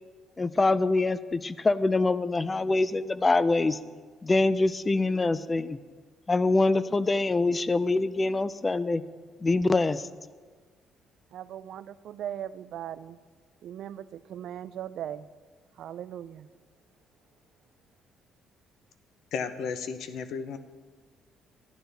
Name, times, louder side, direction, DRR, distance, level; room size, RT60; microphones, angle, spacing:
voice 1, 0.4-3.8 4.2-5.8 6.3-9.0 9.4-10.0, left 3 dB, 20° left, 16 dB, 0.4 m, -24 dB
voice 2, 11.3-13.2 13.6-15.3 15.8-16.5, right 10 dB, 70° right, 16 dB, 0.4 m, -39 dB
voice 3, 19.3-20.6, left 6 dB, 75° left, 11 dB, 0.7 m, -33 dB
14.0 x 11.0 x 3.4 m, 1.5 s
cardioid pair, 105°, 0 cm